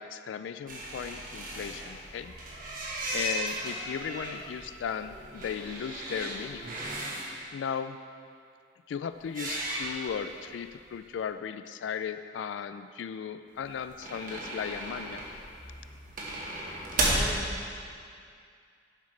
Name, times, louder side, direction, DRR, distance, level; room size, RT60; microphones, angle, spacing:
voice 1, 0.0-2.3 3.1-6.7 7.5-8.0 8.9-15.2, left 7 dB, 80° left, 11 dB, 0.3 m, -36 dB
sound 1, 0.7-7.3 9.2-10.4 10.7-10.8 11.0-11.1 13.6-17.3, right 1 dB, 50° right, 1.4 m, -35 dB
voice 2, 17.1-17.8, equal, 10° right, -3 dB, 1.0 m, -41 dB
11.0 x 7.4 x 3.3 m, 2.3 s
head